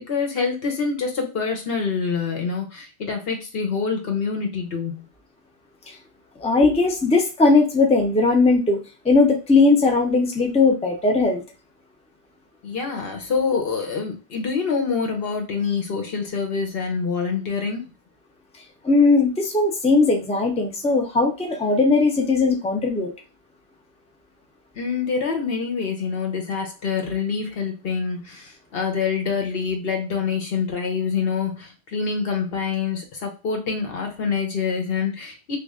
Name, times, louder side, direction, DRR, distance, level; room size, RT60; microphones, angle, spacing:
voice 1, 0.1-5.0 12.6-17.9 24.7-35.6, left 5 dB, 70° left, 2 dB, 1.1 m, -26 dB
voice 2, 6.4-11.4 18.8-23.1, left 3 dB, 10° left, 1 dB, 0.5 m, -19 dB
3.1 x 2.4 x 3.6 m, 0.30 s
omnidirectional pair, 1.1 m